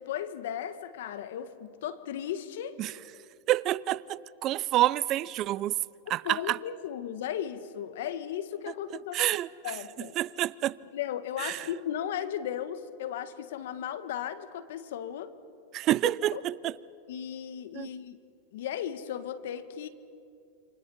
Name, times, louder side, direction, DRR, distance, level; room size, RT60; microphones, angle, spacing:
voice 1, 0.0-2.8 6.2-9.3 9.6-10.1 10.9-15.3 16.0-16.4 17.1-18.2 18.5-19.9, left 10 dB, 70° left, 1.5 m, -36 dB
voice 2, 3.5-5.8 6.1-6.6 9.1-9.5 10.2-10.8 11.4-11.6 15.7-16.7 17.7-17.9, right 14 dB, 40° right, 0.5 m, -28 dB
28.5 x 26.0 x 5.6 m
hypercardioid pair, 115°, 0 cm